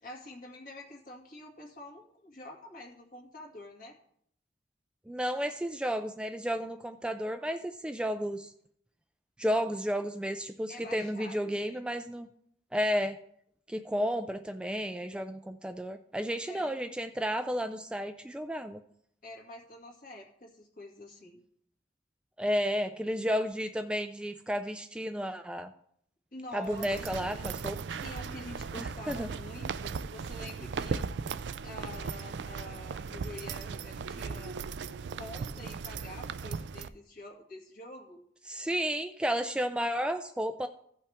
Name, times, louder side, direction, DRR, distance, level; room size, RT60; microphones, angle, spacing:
voice 1, 0.0-4.0 5.4-5.5 10.7-11.8 16.5-16.8 19.2-21.4 26.3-31.1 31.6-34.6 35.1-38.2, left 1 dB, 55° left, 0 dB, 2.0 m, -47 dB
voice 2, 5.1-8.5 9.4-12.3 12.7-13.2 13.7-18.8 22.4-25.7 26.5-27.8 28.8-29.3 38.5-40.7, equal, 5° right, 8 dB, 0.3 m, -32 dB
sound 1, 26.6-36.9, right 5 dB, 80° right, 0.4 m, -37 dB
15.5 x 5.6 x 3.5 m, 0.68 s
head